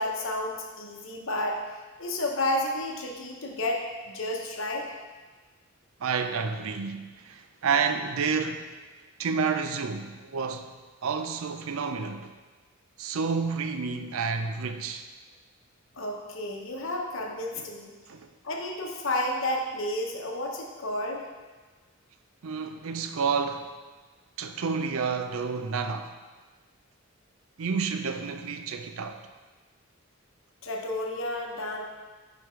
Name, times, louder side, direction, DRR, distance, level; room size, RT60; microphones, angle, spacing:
voice 1, 0.0-1.6 2.0-4.9 16.0-17.9 18.4-21.2 30.6-31.9, left 1 dB, 65° left, 0.9 m, -31 dB
voice 2, 6.0-8.7 9.2-10.7 11.0-12.3 13.0-15.1 17.6-17.7 18.1-18.3 22.4-23.7 24.4-26.2 27.6-29.2, right 5 dB, 75° right, 0.5 m, -30 dB
8.3 x 5.0 x 3.1 m
head